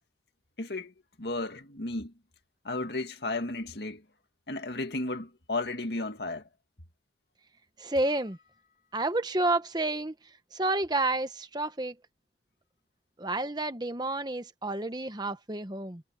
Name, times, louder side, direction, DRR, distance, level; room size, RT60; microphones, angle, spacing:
voice 1, 0.6-2.1 2.6-4.0 4.5-6.5, left 2 dB, 65° left, 2.2 m, -34 dB
voice 2, 7.8-8.4 8.9-10.1 10.5-11.9 13.2-16.0, right 2 dB, 25° right, 1.1 m, -30 dB
sound 1, 8.0-9.3, left 6 dB, 45° left, 6.4 m, -61 dB
head